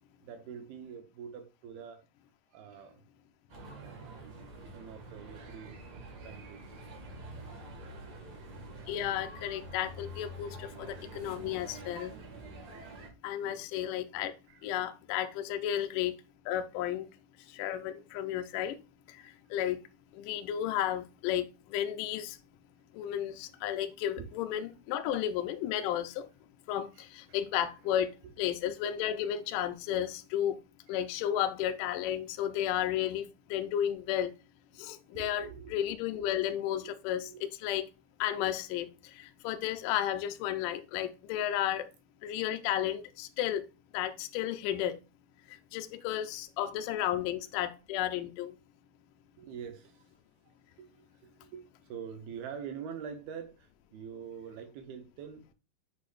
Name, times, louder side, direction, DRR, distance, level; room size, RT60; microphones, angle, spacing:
voice 1, 0.2-2.0 2.5-3.0 3.7-4.3 4.5-7.2 7.6-8.2 13.4-13.6 14.5-14.7 15.6-15.8 19.2-19.3 23.6-23.8 24.1-24.7 25.0-25.1 25.6-25.7 26.9-27.1 28.2-28.3 34.7-34.8 35.1-35.8 36.7-36.9 37.3-37.4 46.6-46.7 47.1-47.3 49.4-50.1 50.4-55.5, right 7 dB, 75° right, 2.9 m, -46 dB
sound 1, 3.5-13.1, right 1 dB, 50° right, 2.9 m, -46 dB
voice 2, 8.9-12.1 13.2-14.3 14.6-16.2 16.5-17.1 17.5-18.8 19.1-19.8 20.1-22.4 22.9-26.3 26.7-30.6 30.9-34.3 34.8-37.9 38.2-41.9 42.2-43.7 43.9-45.0 45.5-48.6, left 11 dB, 80° left, 1.9 m, -33 dB
8.4 x 6.1 x 2.5 m
omnidirectional pair, 4.6 m